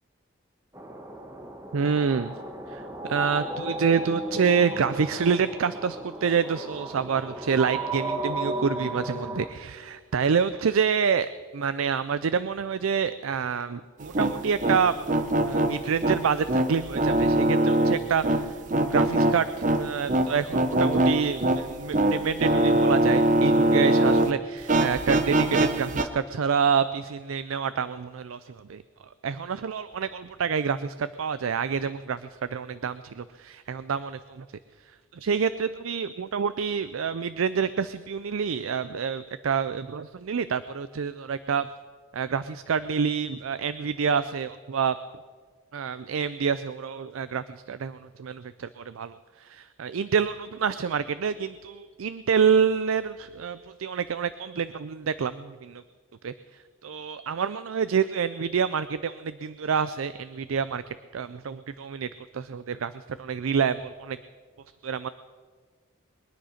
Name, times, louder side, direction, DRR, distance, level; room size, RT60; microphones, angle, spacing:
sound 1, 0.7-9.5, right 1 dB, 15° right, 1.4 m, -34 dB
voice 1, 1.7-2.3 2.7-2.8 3.1-15.0 15.5-28.8 29.2-34.4 35.1-41.7 42.1-45.0 45.7-55.8 56.2-56.3 56.8-60.8 61.1-62.1 62.3-64.2 64.8-65.1, right 6 dB, 90° right, 14 dB, 0.5 m, -27 dB
sound 2, 14.0-24.3 24.6-26.0, right 1 dB, 40° right, 0.8 m, -23 dB
22.0 x 10.0 x 5.8 m, 1.5 s
head